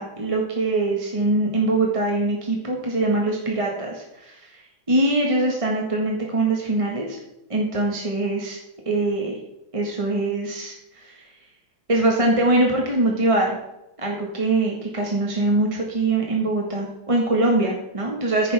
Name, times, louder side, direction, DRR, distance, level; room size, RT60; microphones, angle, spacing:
voice 1, 0.0-7.2 7.5-8.6 8.8-9.4 9.7-11.3 11.9-13.6 14.0-18.5, right 2 dB, 20° right, -1 dB, 1.3 m, -23 dB
10.5 x 9.1 x 3.5 m, 0.90 s
omnidirectional pair, 2.3 m